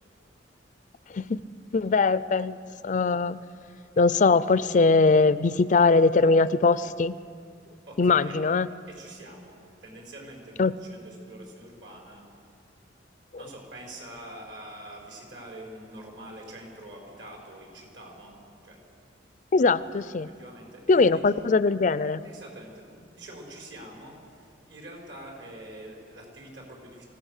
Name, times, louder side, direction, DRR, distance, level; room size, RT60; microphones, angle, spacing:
voice 1, 1.7-2.6 2.8-3.4 4.0-7.2 8.0-8.7 10.6-10.7 19.5-20.3 20.9-22.2, left 4 dB, 40° left, 16 dB, 0.4 m, -21 dB
voice 2, 7.9-8.4 8.9-12.3 13.3-18.8 20.2-21.2 22.2-27.0, right 1 dB, 70° right, 0 dB, 5.3 m, -45 dB
25.0 x 16.0 x 6.6 m, 2.3 s
head